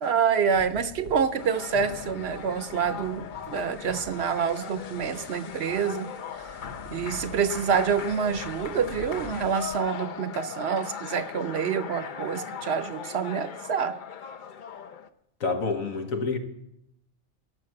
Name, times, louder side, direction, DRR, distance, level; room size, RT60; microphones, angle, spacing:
voice 1, 0.0-6.1 6.9-14.0, right 6 dB, 60° right, 13 dB, 0.8 m, -27 dB
sound 1, 0.5-9.8, left 3 dB, 65° left, 1.4 m, -45 dB
sound 2, 1.4-15.1, left 7 dB, 50° left, 0.6 m, -39 dB
voice 2, 15.4-16.4, left 4 dB, 85° left, 6 dB, 1.8 m, -28 dB
16.5 x 6.4 x 7.6 m, 0.81 s
omnidirectional pair, 1.4 m